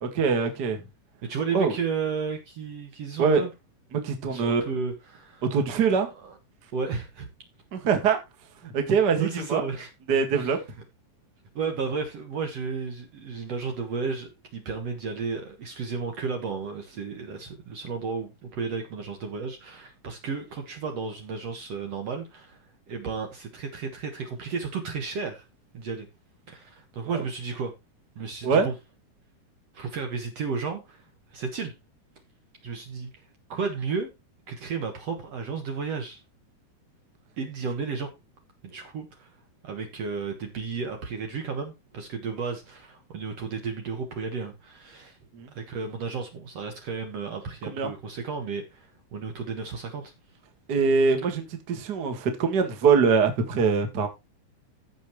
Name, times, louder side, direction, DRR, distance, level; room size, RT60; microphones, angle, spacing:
voice 1, 0.0-0.8 1.5-1.7 3.2-3.4 3.9-4.6 5.5-6.1 7.7-8.2 8.6-9.6 10.1-10.6 27.0-27.2 28.4-28.7 45.3-45.5 47.7-47.9 50.7-54.1, right 5 dB, 35° right, 2.0 m, -23 dB
voice 2, 1.2-3.5 4.3-5.4 6.2-6.3 6.7-7.3 9.2-9.9 10.3-10.6 11.6-22.6 22.9-25.4 25.7-26.1 26.5-27.7 28.2-28.7 29.7-31.0 31.3-31.7 32.6-33.1 33.5-34.1 34.5-36.2 37.4-38.1 38.6-39.3 39.6-45.2 45.5-50.1, right 5 dB, 55° right, 2.3 m, -33 dB
15.0 x 6.2 x 3.1 m
omnidirectional pair, 3.8 m